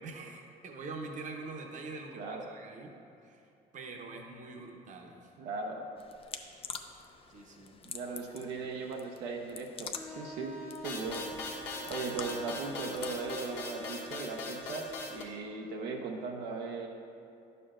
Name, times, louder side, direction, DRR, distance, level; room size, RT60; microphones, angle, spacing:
voice 1, 0.0-2.2 2.5-2.9 3.2-3.4 3.7-5.3 7.3-7.7 8.6-8.7, right 3 dB, 45° right, 2 dB, 0.9 m, -44 dB
voice 2, 2.1-2.5 5.4-5.9 7.8-10.6 10.8-11.4 11.9-16.9, right 4 dB, 80° right, 0 dB, 0.7 m, -38 dB
sound 1, 6.0-13.2, left 6 dB, 35° left, 0.5 m, -47 dB
Wind instrument woodwind instrument, 9.9-15.7, equal, 10° left, 0.8 m, -48 dB
sound 2, 10.8-15.2, left 3 dB, 85° left, 1.3 m, -40 dB
9.9 x 6.7 x 2.5 m, 2.6 s
cardioid pair, 110°, 17 cm